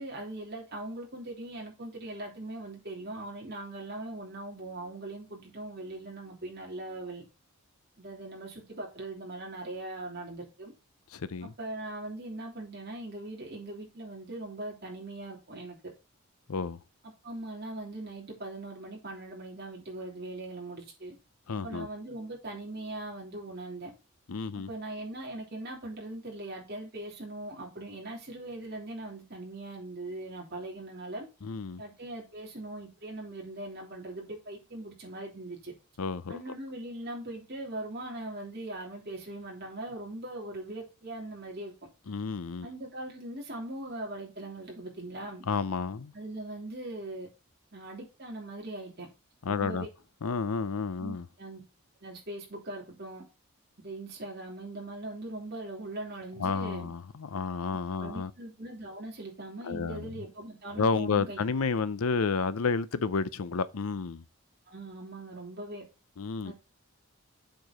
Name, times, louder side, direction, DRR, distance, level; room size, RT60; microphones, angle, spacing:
voice 1, 0.0-7.2 8.0-10.7 11.4-15.8 17.2-21.2 21.5-23.9 24.5-31.3 31.8-35.7 36.3-41.7 42.6-45.4 46.1-47.3 47.7-49.1 49.5-49.9 51.0-51.6 52.0-53.3 53.8-56.9 58.0-61.4 64.7-65.8 66.4-66.5, right 2 dB, 45° right, 3.1 m, -40 dB
voice 2, 11.1-11.5 16.5-16.8 21.5-21.9 24.3-24.7 31.4-31.8 36.0-36.4 42.1-42.7 45.5-46.1 49.4-49.9 50.2-51.3 56.4-58.3 59.6-60.1 60.8-64.2 66.2-66.5, left 4 dB, 75° left, 0.6 m, -31 dB
7.8 x 4.6 x 5.0 m
head